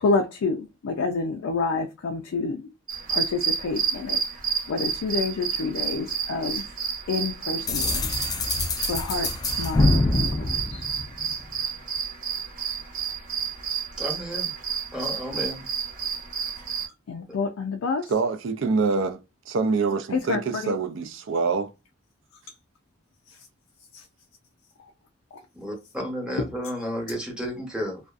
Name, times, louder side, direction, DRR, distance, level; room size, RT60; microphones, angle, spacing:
voice 1, 0.0-2.6 3.1-4.2 4.7-6.6 7.1-8.0 8.9-9.3 9.6-10.8 17.1-18.0 20.1-20.7, left 4 dB, 90° left, 0.4 m, -28 dB
sound 1, 2.9-16.9, right 7 dB, 45° right, 0.8 m, -30 dB
sound 2, 7.7-11.5, left 2 dB, 20° left, 0.3 m, -25 dB
voice 2, 14.0-14.5 14.9-15.7 25.5-28.0, equal, 5° right, 0.8 m, -32 dB
voice 3, 18.1-19.2 19.5-21.7, right 4 dB, 65° right, 0.4 m, -25 dB
2.5 x 2.2 x 2.4 m
head